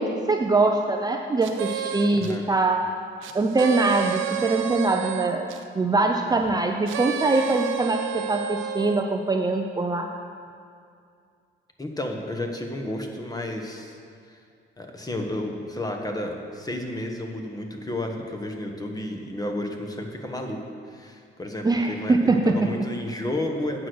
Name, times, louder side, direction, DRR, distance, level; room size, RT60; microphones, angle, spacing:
voice 1, 0.0-2.9 3.3-10.1 21.6-22.5, right 3 dB, 20° right, 3 dB, 0.5 m, -23 dB
sound 1, 1.4-2.4 3.2-5.6 6.9-9.1, right 10 dB, 90° right, 0.7 m, -31 dB
voice 2, 2.2-2.5 11.8-14.0 14.3-14.4 14.8-22.2 22.4-23.9, left 1 dB, 20° left, 3 dB, 1.3 m, -32 dB
9.1 x 6.3 x 6.3 m, 2.3 s
cardioid pair, 90°, 20 cm